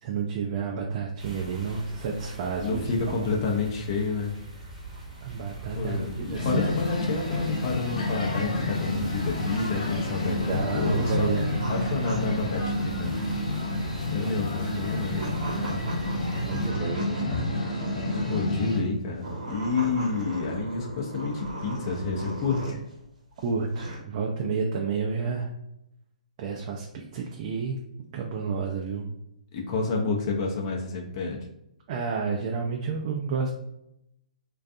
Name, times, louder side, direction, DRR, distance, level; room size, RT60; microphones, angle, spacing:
voice 1, 0.0-3.4 5.2-6.7 10.5-11.6 14.2-15.9 16.4-17.4 23.4-25.5 26.4-27.8 28.1-29.1 31.9-33.5, right 5 dB, 40° right, 0 dB, 0.3 m, -31 dB
sound 1, 1.2-16.7, right 3 dB, 10° right, 0.8 m, -42 dB
voice 2, 2.6-4.3 5.7-11.3 11.7-13.2 14.1-15.2 18.3-22.8 29.5-31.4, left 4 dB, 40° left, 0 dB, 0.5 m, -29 dB
sound 2, 6.3-18.8, left 2 dB, 65° left, 0.8 m, -29 dB
sound 3, 8.8-18.6 19.1-22.9 23.4-24.0, right 2 dB, 75° right, 0.8 m, -38 dB
2.5 x 2.3 x 2.4 m, 0.82 s
hypercardioid pair, 135°, 4 cm